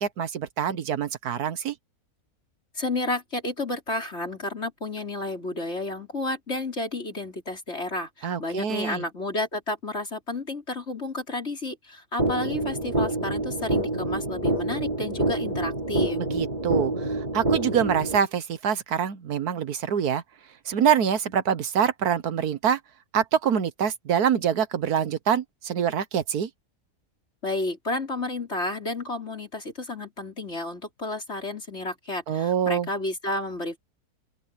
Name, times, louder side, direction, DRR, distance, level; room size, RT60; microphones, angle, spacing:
voice 1, 0.0-1.7 8.2-9.0 16.2-20.2 20.7-22.8 23.1-26.5 32.3-32.9, right 8 dB, 75° right, 1.6 m, -25 dB
voice 2, 2.8-16.2 27.4-33.8, left 2 dB, 45° left, 5.2 m, -31 dB
sound 1, 12.2-18.2, right 2 dB, 30° right, 3.5 m, -27 dB
open air
omnidirectional pair, 1.6 m